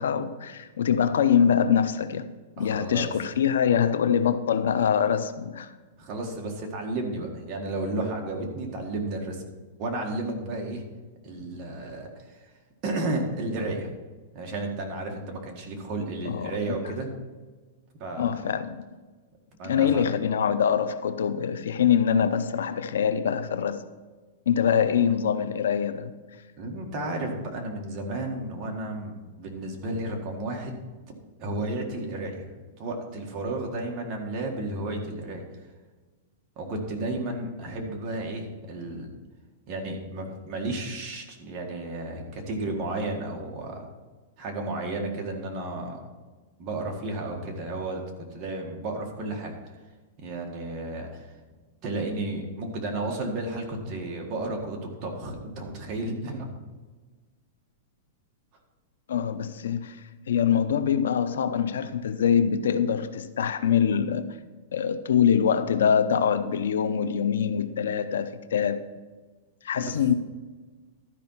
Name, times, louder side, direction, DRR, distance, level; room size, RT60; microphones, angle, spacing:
voice 1, 0.0-2.3 2.6-5.7 16.3-16.8 18.2-18.8 19.6-23.8 24.5-26.1 59.1-64.3 64.7-68.9 69.6-70.1, left 8 dB, 90° left, 0.7 m, -24 dB
voice 2, 2.6-3.1 6.0-9.4 9.8-10.8 11.2-12.4 12.8-13.9 14.3-17.1 18.0-18.5 19.6-20.1 26.6-30.8 31.4-32.5 32.8-35.4 36.6-39.1 39.7-43.9 44.4-46.0 46.6-48.0 48.3-49.7 50.2-51.3 51.8-56.5 69.8-70.0, right 2 dB, 30° right, 1.7 m, -32 dB
12.5 x 5.2 x 5.7 m
supercardioid pair, 160°, 0 cm